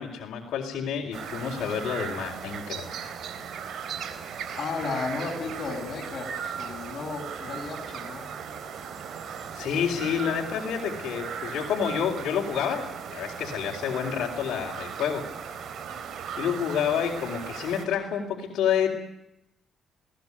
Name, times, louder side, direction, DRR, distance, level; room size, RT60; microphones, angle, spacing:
voice 1, 0.0-2.9 9.5-12.8 13.1-15.6 16.4-18.9, left 8 dB, 75° left, -3 dB, 4.2 m, -29 dB
sound 1, 1.1-17.9, right 7 dB, 65° right, 3.7 m, -37 dB
voice 2, 4.6-8.2, left 4 dB, 50° left, -1 dB, 7.9 m, -34 dB
22.0 x 18.5 x 9.8 m, 0.84 s
cardioid pair, 90°, 0 cm